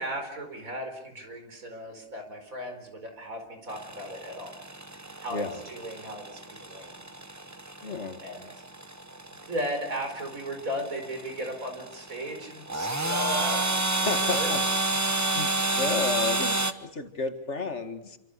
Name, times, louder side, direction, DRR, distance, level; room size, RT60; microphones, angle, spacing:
voice 1, 0.0-4.6 5.2-7.0 8.2-8.6 9.4-14.5, equal, 85° right, 5 dB, 4.9 m, -36 dB
sound 1, 3.7-16.7, right 2 dB, 15° right, 1.0 m, -30 dB
voice 2, 7.8-8.2 14.1-15.0 15.3-15.5 15.8-18.2, left 4 dB, 55° left, 7 dB, 2.3 m, -32 dB
27.5 x 25.5 x 6.8 m, 0.85 s
omnidirectional pair, 1.4 m